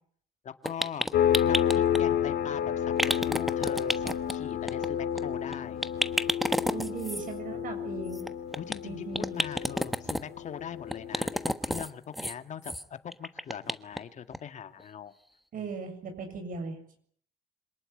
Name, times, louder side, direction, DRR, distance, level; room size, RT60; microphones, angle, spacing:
voice 1, 0.4-1.1 1.4-5.8 7.5-7.7 8.5-15.1 15.5-15.7, left 8 dB, 45° left, 9 dB, 1.9 m, -41 dB
sound 1, 0.6-2.0 3.0-4.3 4.7-4.9 5.2-5.3 5.5-5.6 5.8-7.2 8.1-8.7 9.1-10.2 10.9-11.9 12.1-12.3 12.6-12.8 13.1-14.0 14.3-14.4 14.8-14.9, equal, ahead, 1.3 m, -30 dB
sound 2, 1.1-11.5, left 9 dB, 65° left, 2.5 m, -30 dB
voice 2, 6.7-8.2 8.8-9.3 15.5-17.0, right 5 dB, 55° right, 6 dB, 7.3 m, -38 dB
26.5 x 19.0 x 9.7 m, 0.63 s
cardioid pair, 110°, 17 cm